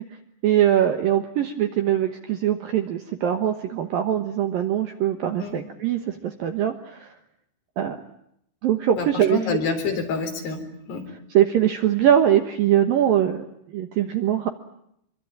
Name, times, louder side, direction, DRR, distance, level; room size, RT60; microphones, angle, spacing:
voice 1, 0.4-7.1 7.8-8.0 8.6-9.4 11.3-13.4 13.7-14.5, right 10 dB, 65° right, 7 dB, 2.4 m, -22 dB
voice 2, 9.0-10.6 10.9-11.1, left 4 dB, 60° left, 4 dB, 5.7 m, -27 dB
26.0 x 24.0 x 8.8 m, 0.74 s
omnidirectional pair, 5.5 m